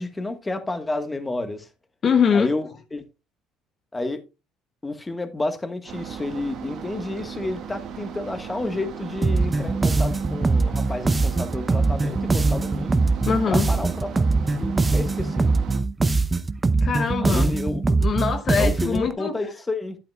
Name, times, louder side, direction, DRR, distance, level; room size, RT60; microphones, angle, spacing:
voice 1, 0.0-1.7 2.3-3.0 3.9-4.2 4.8-13.0 13.5-14.3 14.6-15.5 17.2-17.8 18.6-20.0, left 2 dB, 15° left, 1.5 m, -30 dB
voice 2, 2.0-2.5 13.3-13.7 16.8-17.6 18.0-19.3, left 6 dB, 45° left, 1.0 m, -22 dB
sound 1, 5.9-15.8, right 7 dB, 60° right, 1.6 m, -37 dB
sound 2, 9.2-19.1, right 3 dB, 20° right, 0.8 m, -22 dB
11.0 x 8.5 x 2.4 m
supercardioid pair, 90°, 0 cm